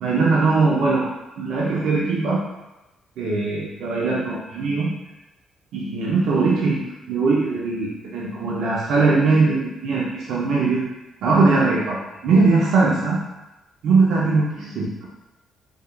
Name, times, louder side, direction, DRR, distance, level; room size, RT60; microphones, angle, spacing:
voice 1, 0.0-1.1 1.4-2.4 3.2-4.9 5.7-10.8 11.2-12.0 12.2-13.2 13.8-15.1, right 3 dB, 80° right, -5 dB, 0.6 m, -20 dB
3.6 x 3.4 x 2.3 m, 0.99 s
cardioid pair, 90°, 0 cm